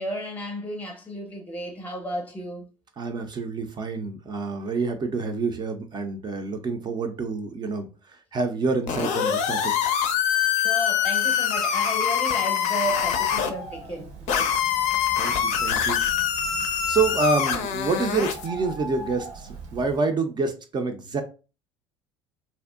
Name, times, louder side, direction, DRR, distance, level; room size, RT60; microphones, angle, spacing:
voice 1, 0.0-2.7 10.4-14.6, equal, 10° left, 0.7 m, -33 dB
voice 2, 3.0-10.0 14.9-16.0 16.4-16.6 16.9-21.2, right 4 dB, 30° right, 0.4 m, -28 dB
sound 1, 8.9-13.5 14.3-18.5, left 8 dB, 50° left, 0.5 m, -24 dB
Bird, 12.8-20.0, right 2 dB, 70° right, 0.7 m, -41 dB
2.6 x 2.0 x 2.3 m
figure-of-eight pair, 65°, 15 cm